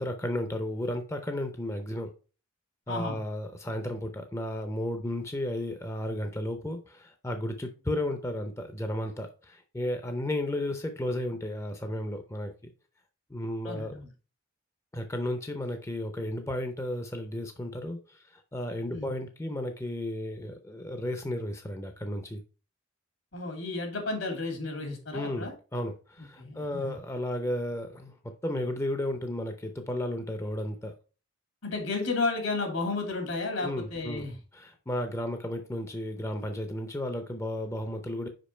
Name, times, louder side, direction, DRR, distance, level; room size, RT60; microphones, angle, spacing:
voice 1, 0.0-2.1 2.9-12.5 13.3-13.9 14.9-22.4 25.1-30.9 33.6-34.3 34.5-38.3, left 1 dB, 15° left, 0.5 m, -33 dB
voice 2, 2.9-3.2 13.6-14.1 18.9-19.1 23.3-25.5 26.4-27.0 31.6-34.4, left 3 dB, 80° left, 2.5 m, -32 dB
5.1 x 5.1 x 4.3 m
head